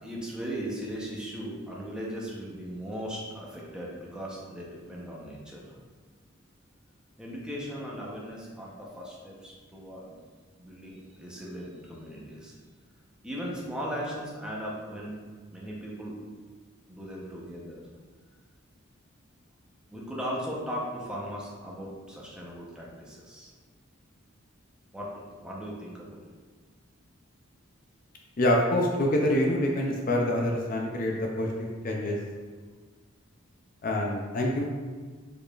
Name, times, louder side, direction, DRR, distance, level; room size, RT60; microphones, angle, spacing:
voice 1, 0.0-5.8 7.2-10.2 10.6-12.5 13.2-15.2 15.5-16.2 16.9-17.8 19.9-23.5 24.9-26.2, equal, 5° right, -5 dB, 0.7 m, -38 dB
voice 2, 28.4-32.2 33.8-34.7, left 1 dB, 40° left, 0 dB, 0.4 m, -26 dB
4.8 x 4.7 x 2.4 m, 1.5 s
head